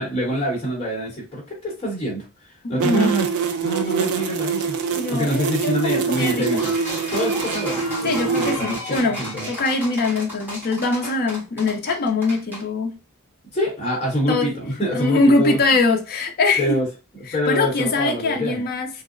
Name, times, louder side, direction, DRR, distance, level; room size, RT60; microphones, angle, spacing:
voice 1, 0.0-3.3 3.6-4.8 5.1-6.7 7.1-9.5 13.5-15.6 16.6-16.9 17.3-18.6, equal, 25° left, 0.9 m, -25 dB
voice 2, 2.6-3.1 4.9-6.6 8.0-9.2 9.5-12.9 14.3-14.5 14.9-16.8 17.3-18.9, left 3 dB, 45° left, 0.5 m, -22 dB
sound 1, 2.8-8.5, right 5 dB, 70° right, 0.4 m, -25 dB
sound 2, 6.4-12.6, left 1 dB, 10° right, 1.1 m, -33 dB
2.7 x 2.0 x 2.4 m
head